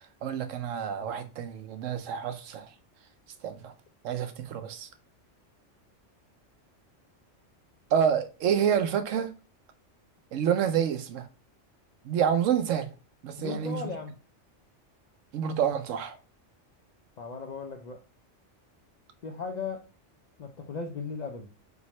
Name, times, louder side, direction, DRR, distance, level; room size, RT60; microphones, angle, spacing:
voice 1, 0.2-2.7 3.4-3.7 4.0-4.9 7.9-9.3 10.3-11.3 12.0-12.9 13.2-13.8 15.3-16.2, right 8 dB, 85° right, 1.0 m, -28 dB
voice 2, 13.4-14.2 17.2-18.0 19.2-19.9 20.4-21.5, left 4 dB, 65° left, 0.4 m, -37 dB
4.2 x 3.5 x 3.0 m
omnidirectional pair, 1.3 m